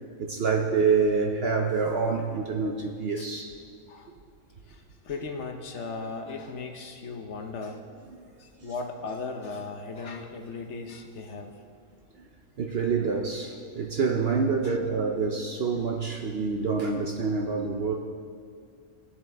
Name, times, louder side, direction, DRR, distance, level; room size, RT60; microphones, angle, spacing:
voice 1, 0.2-3.6 8.6-8.7 12.2-12.3 12.6-17.9, right 5 dB, 55° right, 2 dB, 0.7 m, -27 dB
voice 2, 4.7-8.0 8.4-11.5 14.6-14.8, left 4 dB, 55° left, 4 dB, 1.0 m, -37 dB
18.5 x 7.0 x 3.4 m, 2.2 s
omnidirectional pair, 1.5 m